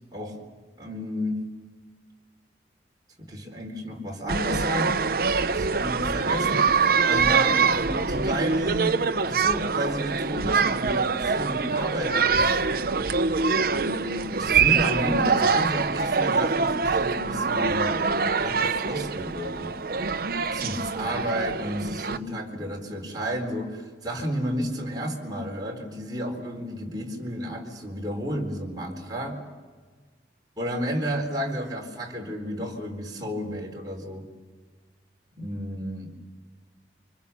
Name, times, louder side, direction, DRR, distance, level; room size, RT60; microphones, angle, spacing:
voice 1, 0.8-1.4 3.2-5.0 5.5-12.6 13.7-18.0 18.4-19.8 20.5-29.5 30.6-34.3 35.4-36.1, equal, 20° right, -1 dB, 4.2 m, -32 dB
sound 1, 4.3-22.2, right 5 dB, 55° right, 0.8 m, -24 dB
29.0 x 25.0 x 7.1 m, 1.5 s
head